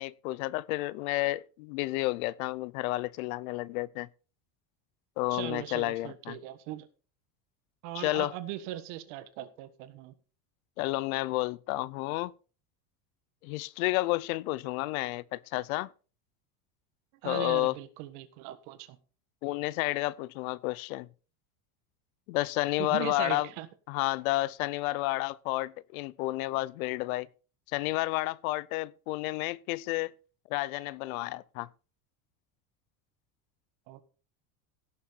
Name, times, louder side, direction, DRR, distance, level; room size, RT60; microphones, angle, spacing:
voice 1, 0.0-4.1 5.2-6.4 7.9-8.3 10.8-12.3 13.4-15.9 17.2-17.7 19.4-21.1 22.3-23.5 23.9-27.3 27.7-30.1 30.5-31.7, left 19 dB, 80° left, 0.6 m, -31 dB
voice 2, 5.3-6.9 7.8-10.1 17.2-19.0 22.8-23.7 33.9-34.0, right 14 dB, 65° right, 1.6 m, -39 dB
17.0 x 7.2 x 4.1 m
cardioid pair, 155°, 41 cm